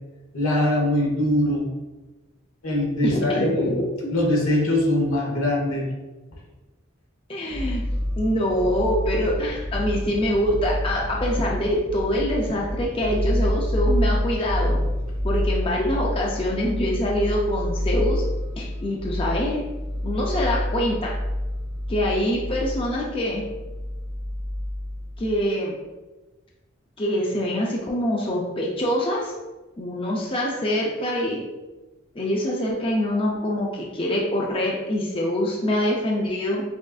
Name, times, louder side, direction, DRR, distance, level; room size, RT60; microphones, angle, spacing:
voice 1, 0.3-1.7 2.6-3.8 4.1-5.9, left 1 dB, 85° left, -2 dB, 1.1 m, -22 dB
voice 2, 3.0-3.5 3.8-4.1 7.3-7.8 8.2-14.8 15.2-18.2 18.6-19.6 20.0-21.1 21.9-23.4 25.2-25.8 27.0-29.3 29.8-31.4 32.2-36.6, equal, 25° left, -2 dB, 0.4 m, -25 dB
sound 1, 7.5-25.4, left 1 dB, 10° right, 0.8 m, -28 dB
6.0 x 2.5 x 2.4 m, 1.1 s
head